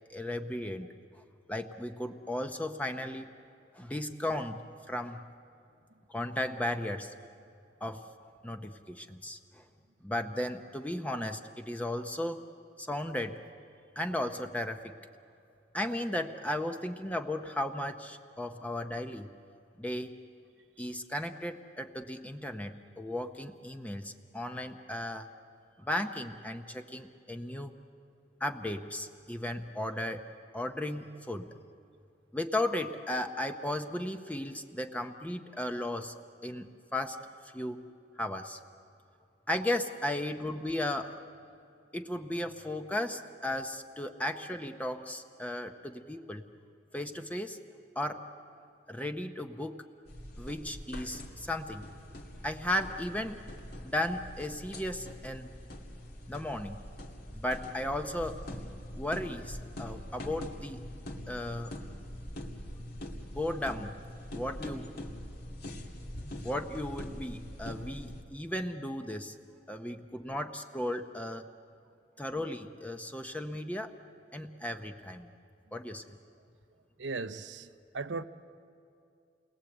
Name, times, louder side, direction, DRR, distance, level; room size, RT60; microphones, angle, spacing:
voice 1, 0.1-0.9 1.1-1.2 1.5-3.3 3.7-4.6 4.9-5.2 6.1-7.1 7.8-8.0 8.4-9.6 10.0-12.4 12.8-13.4 14.0-14.9 15.7-19.3 19.8-20.2 20.8-25.3 25.8-27.7 28.4-30.2 30.5-31.5 32.3-36.1 36.4-37.2 37.5-37.8 38.2-38.6 39.5-41.2 41.9-46.4 46.9-47.6 48.0-48.2 48.9-49.8 50.4-51.9 52.4-53.4 53.8-55.5 56.3-56.8 57.3-58.4 58.9-60.8 61.3-61.7 63.3-63.9 64.3-64.9 66.4-69.4 69.7-71.4 72.2-73.9 74.3-75.3 75.7-76.0, left 1 dB, 10° left, 0.7 m, -35 dB
sound 1, 50.1-68.2, left 1 dB, 60° left, 2.3 m, -43 dB
voice 2, 77.0-78.2, right 3 dB, 85° right, 0.8 m, -37 dB
28.5 x 21.0 x 8.0 m
head